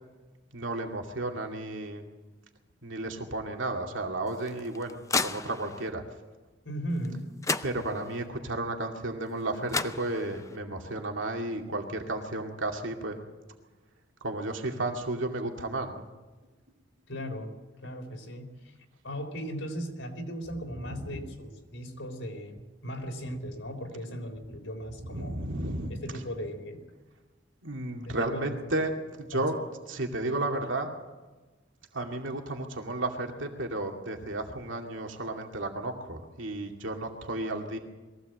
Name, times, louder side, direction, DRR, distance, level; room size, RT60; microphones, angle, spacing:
voice 1, 0.5-2.0 2.8-6.0 7.6-13.2 14.2-16.1 21.1-21.2 25.1-26.0 27.6-28.9 29.2-29.6 29.9-30.9 31.9-37.8, right 2 dB, 85° right, 2 dB, 2.4 m, -33 dB
sound 1, 4.3-5.9 7.0-7.1 7.4-8.3 9.4-9.5 9.7-10.6, left 4 dB, 15° left, 0.6 m, -33 dB
voice 2, 6.6-7.2 17.1-17.5 17.8-18.7 19.0-25.4 25.9-26.9 27.9-28.6 29.3-29.5, equal, 85° left, 4 dB, 3.8 m, -37 dB
22.0 x 16.5 x 7.8 m, 1.2 s
head